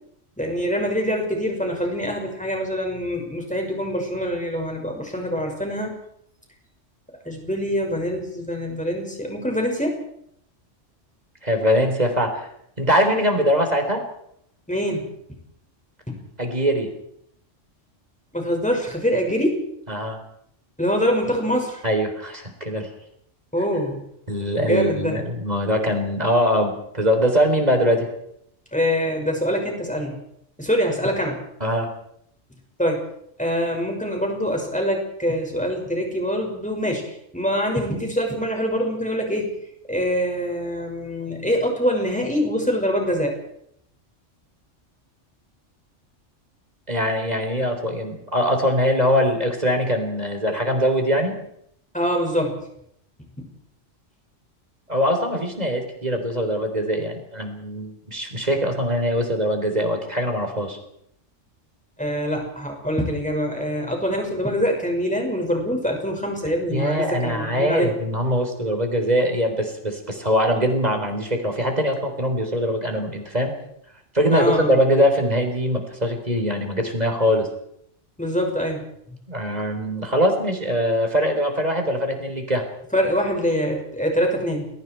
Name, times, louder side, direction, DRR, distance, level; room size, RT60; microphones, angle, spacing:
voice 1, 0.4-6.0 7.2-10.0 14.7-15.4 18.3-19.6 20.8-21.8 23.5-24.1 24.6-25.2 28.7-30.2 30.6-31.4 32.8-33.1 33.4-39.5 39.9-43.4 51.9-52.6 62.0-67.9 74.3-74.8 78.2-78.9 82.9-84.7, equal, 5° left, 1 dB, 5.7 m, -24 dB
voice 2, 11.4-12.5 12.8-14.0 16.4-16.9 19.9-20.2 21.8-22.9 24.3-28.1 31.6-31.9 46.9-51.4 54.9-60.8 66.7-73.5 74.1-77.5 79.3-82.7, equal, 35° right, 4 dB, 4.0 m, -22 dB
29.0 x 22.0 x 4.6 m, 0.72 s
omnidirectional pair, 1.3 m